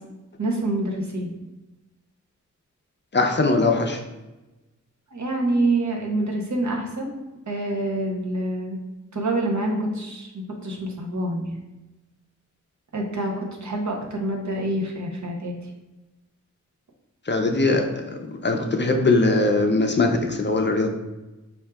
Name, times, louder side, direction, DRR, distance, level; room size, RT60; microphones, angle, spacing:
voice 1, 0.4-1.3 5.1-7.2 7.5-8.8 9.1-11.6 12.9-13.3 13.6-15.5, right 1 dB, 65° right, 0 dB, 0.9 m, -26 dB
voice 2, 3.1-4.0 17.3-17.9 18.4-20.9, left 3 dB, 35° left, 4 dB, 0.5 m, -20 dB
4.5 x 2.7 x 3.4 m, 1.0 s
wide cardioid pair, 80°, 31 cm